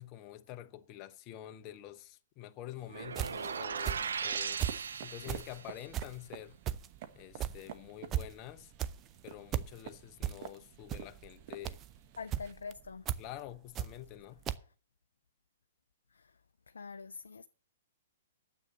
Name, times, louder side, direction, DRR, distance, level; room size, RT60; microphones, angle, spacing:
voice 1, 0.0-4.6 5.0-6.6 7.1-8.7 9.2-11.8 13.2-14.4, left 13 dB, 35° left, 0.8 m, -47 dB
sound 1, 2.7-12.5, right 10 dB, 45° right, 1.1 m, -52 dB
sound 2, 2.9-5.7, right 6 dB, 75° right, 0.5 m, -37 dB
sound 3, 3.1-4.9 5.2-14.2 14.5-14.6, right 11 dB, 25° right, 0.6 m, -37 dB
voice 2, 12.2-13.0 16.1-16.3 16.7-17.5, left 5 dB, 80° left, 0.4 m, -44 dB
9.7 x 7.9 x 7.2 m
figure-of-eight pair, 115°, 0 cm